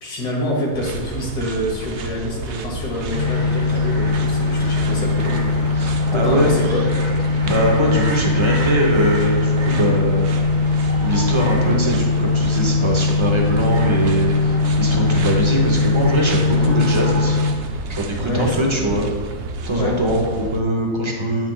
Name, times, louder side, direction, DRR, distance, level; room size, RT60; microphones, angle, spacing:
voice 1, 0.0-5.5 6.1-6.8 18.2-18.9 19.7-20.0, left 1 dB, 80° left, -1 dB, 2.0 m, -26 dB
sound 1, 0.7-20.6, right 3 dB, 90° right, 0.5 m, -31 dB
sound 2, 3.1-17.5, left 3 dB, 45° right, 1.8 m, -20 dB
voice 2, 5.7-6.5 7.4-10.3 11.0-17.5 17.9-19.0 19.6-21.5, right 1 dB, 25° right, 0 dB, 0.7 m, -22 dB
9.0 x 5.9 x 2.4 m, 1.4 s
omnidirectional pair, 1.6 m